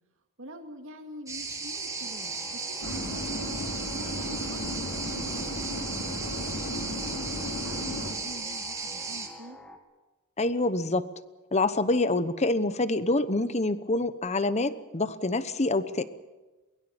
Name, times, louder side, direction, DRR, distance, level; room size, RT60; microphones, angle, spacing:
voice 1, 0.4-3.5 3.9-9.6, equal, 60° right, 4 dB, 2.4 m, -46 dB
sound 1, 1.3-9.3, right 4 dB, 15° right, 2.6 m, -36 dB
sound 2, 1.4-9.8, left 1 dB, 5° left, 2.0 m, -48 dB
sound 3, 2.8-8.1, left 1 dB, 75° left, 4.5 m, -35 dB
voice 2, 10.4-11.1 11.5-16.0, left 2 dB, 30° left, 14 dB, 1.0 m, -26 dB
23.0 x 21.5 x 7.2 m, 1.2 s
head